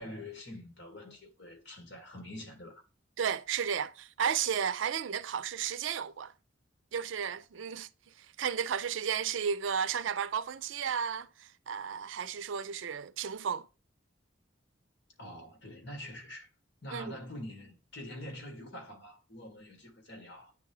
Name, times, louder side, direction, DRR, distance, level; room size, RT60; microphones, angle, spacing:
voice 1, 0.0-2.8 15.2-16.5 16.8-20.5, left 1 dB, 60° left, 2.3 m, -45 dB
voice 2, 3.2-6.3 6.9-7.9 8.2-13.7 16.9-17.2, right 7 dB, 85° right, 0.5 m, -33 dB
9.2 x 3.5 x 3.2 m
head